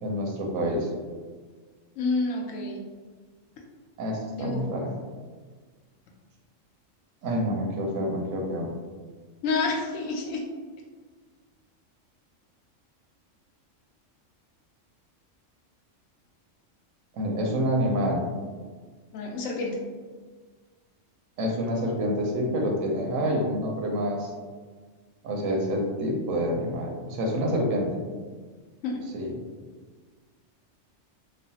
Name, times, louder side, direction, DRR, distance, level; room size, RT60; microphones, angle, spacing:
voice 1, 0.0-0.9 4.0-4.9 7.2-8.7 17.1-18.2 21.4-24.3 25.2-28.0 29.1-29.3, equal, 85° right, 0 dB, 1.0 m, -27 dB
voice 2, 2.0-2.8 4.4-4.6 9.4-10.5 19.1-19.8 28.8-29.0, left 3 dB, 80° left, 0 dB, 1.0 m, -28 dB
3.0 x 2.0 x 2.7 m, 1.5 s
omnidirectional pair, 1.4 m